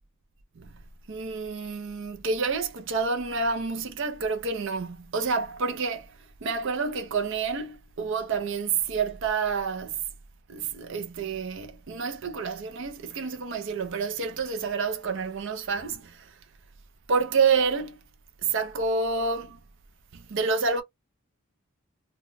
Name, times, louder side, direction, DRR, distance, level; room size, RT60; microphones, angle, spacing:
voice 1, 1.1-6.1 6.4-10.0 10.5-16.3 17.1-18.0 18.4-19.6 20.1-20.8, right 5 dB, 60° right, 0.5 m, -28 dB
2.2 x 2.2 x 3.7 m
head